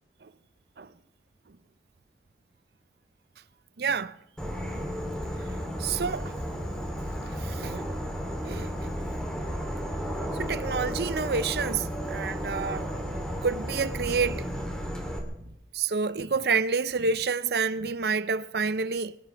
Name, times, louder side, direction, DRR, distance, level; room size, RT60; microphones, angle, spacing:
voice 1, 3.8-4.2 4.7-4.9 5.8-6.3 7.3-7.9 8.4-8.9 10.3-12.9 13.4-14.5 15.7-19.2, right 5 dB, 60° right, 0.6 m, -29 dB
Insect / Frog, 4.4-15.2, equal, 5° left, 3.0 m, -33 dB
25.0 x 16.5 x 3.4 m
head